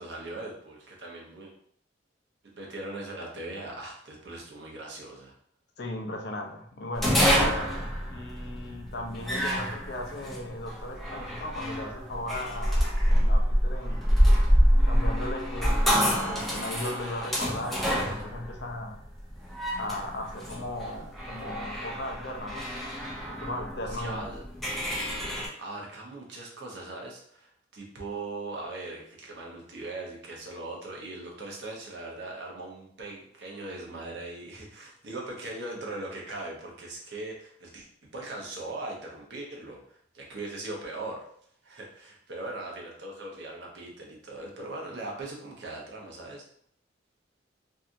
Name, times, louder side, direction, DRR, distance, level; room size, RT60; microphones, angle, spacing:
voice 1, 0.0-1.5 2.5-5.3 23.8-24.4 25.6-41.3 41.6-46.4, right 2 dB, 70° right, -1 dB, 0.7 m, -40 dB
voice 2, 5.8-14.1 14.8-19.0 19.8-22.7 23.2-24.3, left 1 dB, 60° left, 2 dB, 0.5 m, -37 dB
sound 1, 6.9-25.5, equal, ahead, 0.5 m, -27 dB
2.7 x 2.4 x 2.5 m, 0.62 s
head